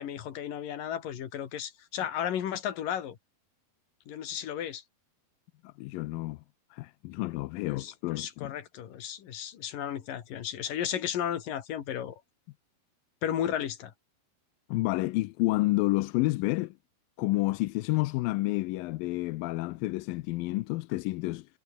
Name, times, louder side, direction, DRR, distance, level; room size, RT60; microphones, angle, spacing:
voice 1, 0.0-3.2 4.1-4.8 7.7-12.2 13.2-13.9, left 10 dB, 60° left, 3.6 m, -34 dB
voice 2, 5.6-6.4 6.7-8.5 14.7-16.7 17.2-21.5, left 20 dB, 80° left, 2.2 m, -29 dB
omnidirectional pair, 4.5 m